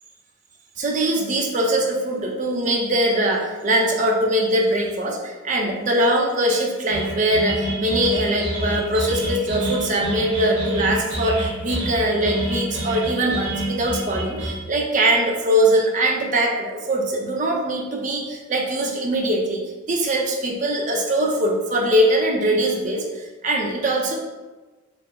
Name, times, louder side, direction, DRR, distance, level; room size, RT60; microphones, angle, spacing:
voice 1, 0.8-24.1, right 1 dB, 40° right, 0 dB, 0.5 m, -22 dB
sound 1, 6.9-14.5, equal, 80° right, 1.3 m, -28 dB
4.3 x 2.0 x 4.0 m, 1.2 s
head